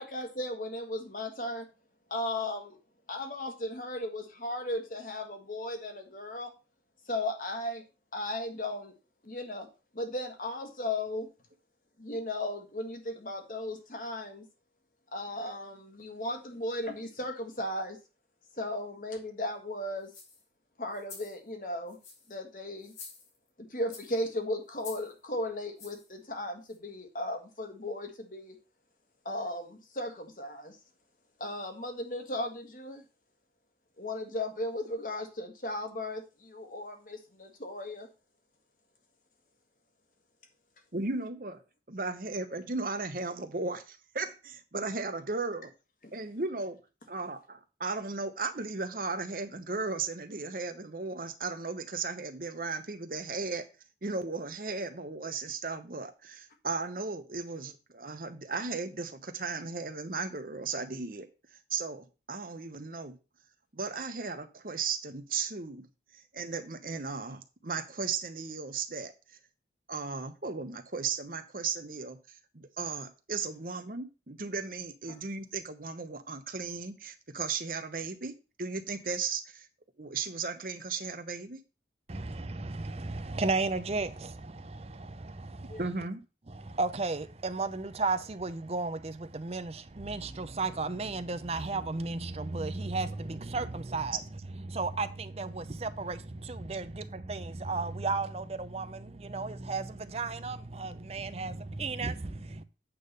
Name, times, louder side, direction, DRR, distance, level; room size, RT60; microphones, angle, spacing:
voice 1, 0.0-1.7 2.1-2.8 3.1-6.5 7.1-7.8 8.1-8.9 9.2-9.7 9.9-11.3 12.0-14.5 15.1-18.0 18.6-20.1 20.8-22.0 22.3-22.9 23.6-28.6 29.2-30.8 31.4-33.0 34.0-38.1 75.1-75.2 85.7-85.8, left 1 dB, 50° left, 1.6 m, -36 dB
sound 1, 20.0-20.4 20.9-21.4 21.9-22.3 22.8-23.5 23.9-24.2 24.8-25.1 25.8-26.1 26.7-26.8, left 4 dB, 90° left, 4.8 m, -48 dB
voice 2, 40.9-41.6 41.9-45.7 46.1-46.8 47.1-53.7 54.0-61.3 61.7-63.2 63.7-65.8 66.1-69.1 69.9-78.3 78.6-79.7 80.0-81.6 85.8-86.2, right 4 dB, 50° right, 1.0 m, -36 dB
voice 3, 82.1-85.8 86.5-94.2 94.5-102.6, right 3 dB, 35° right, 0.6 m, -34 dB
8.7 x 3.8 x 6.7 m
head